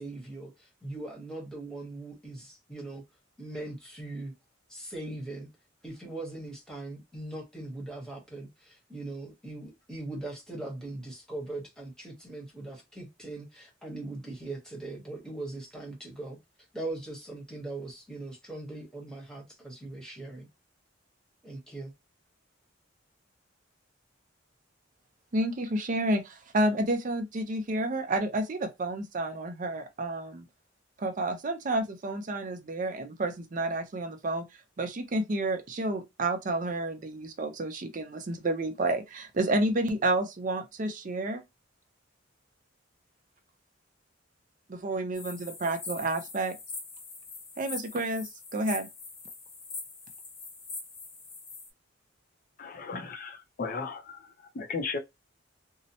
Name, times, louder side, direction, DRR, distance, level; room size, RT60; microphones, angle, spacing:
voice 1, 0.0-3.0 3.4-4.3 4.7-5.5 5.8-16.4 16.7-20.5 21.4-21.9, right 2 dB, 5° left, 1.0 m, -40 dB
voice 2, 25.3-30.4 31.0-34.5 34.8-41.4 44.7-46.6 47.6-48.9, right 2 dB, 40° right, 0.5 m, -30 dB
sound 1, 45.1-51.7, left 4 dB, 70° left, 0.9 m, -43 dB
voice 3, 52.6-55.0, left 4 dB, 45° left, 0.5 m, -36 dB
2.7 x 2.1 x 2.7 m
head